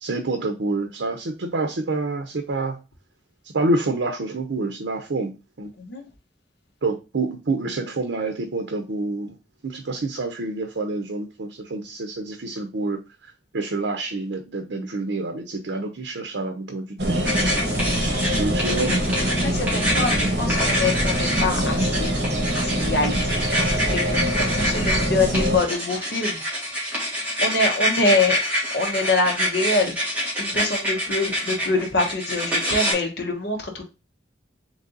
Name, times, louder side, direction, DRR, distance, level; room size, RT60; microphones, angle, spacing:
voice 1, 0.0-2.8 3.5-5.7 6.8-9.4 9.6-13.0 13.5-17.4 18.3-19.0, right 2 dB, 80° right, 4 dB, 0.6 m, -27 dB
sound 1, 17.0-25.6, equal, 60° right, 1.0 m, -24 dB
sound 2, 17.2-32.9, equal, 10° right, 1.6 m, -26 dB
voice 2, 19.4-22.1 22.5-23.3 23.9-26.4 27.4-28.4 28.7-29.9 30.4-33.8, left 2 dB, 70° left, 3 dB, 1.1 m, -25 dB
3.9 x 3.2 x 3.8 m, 0.30 s
head